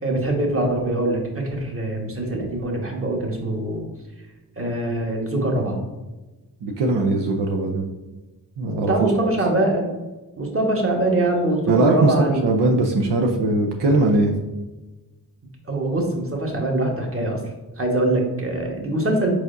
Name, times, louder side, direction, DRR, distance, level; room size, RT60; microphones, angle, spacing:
voice 1, 0.0-3.9 4.6-5.8 8.9-9.9 10.4-12.5 15.7-17.4 17.8-19.3, right 1 dB, 35° right, 0 dB, 1.3 m, -23 dB
voice 2, 6.6-7.9 8.6-8.9 9.2-9.3 11.7-14.3, right 2 dB, 75° right, 1 dB, 0.7 m, -20 dB
4.8 x 4.1 x 2.6 m, 1.1 s
cardioid pair, 60°, 41 cm